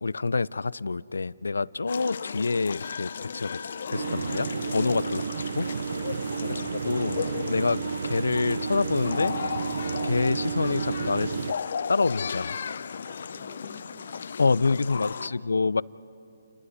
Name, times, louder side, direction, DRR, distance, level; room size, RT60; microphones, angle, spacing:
voice 1, 0.0-3.6 3.9-5.2 5.6-5.7 6.5-7.2 7.5-9.4 10.0-11.3 11.9-12.5 14.4-15.8, left 4 dB, 90° left, 21 dB, 0.4 m, -27 dB
sound 1, 1.9-15.3, left 6 dB, 55° left, 0.7 m, -35 dB
sound 2, 3.9-11.5, right 6 dB, 60° right, 0.6 m, -31 dB
voice 2, 13.0-15.4, left 1 dB, 5° right, 0 dB, 2.1 m, -54 dB
29.5 x 13.0 x 9.7 m, 2.6 s
hypercardioid pair, 160°, 0 cm